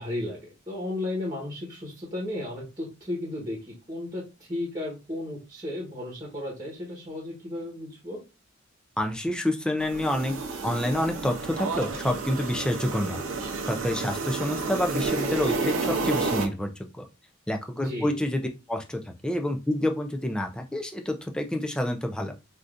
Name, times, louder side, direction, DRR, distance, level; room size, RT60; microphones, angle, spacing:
voice 1, 0.0-8.2 17.7-18.1, left 1 dB, 20° right, -3 dB, 1.1 m, -34 dB
voice 2, 9.0-10.4 10.6-13.2 13.7-17.0 17.5-22.3, left 1 dB, 5° left, 4 dB, 0.3 m, -28 dB
sound 1, 9.8-16.5, right 3 dB, 75° right, 0.6 m, -30 dB
3.5 x 2.5 x 2.5 m, 0.27 s
head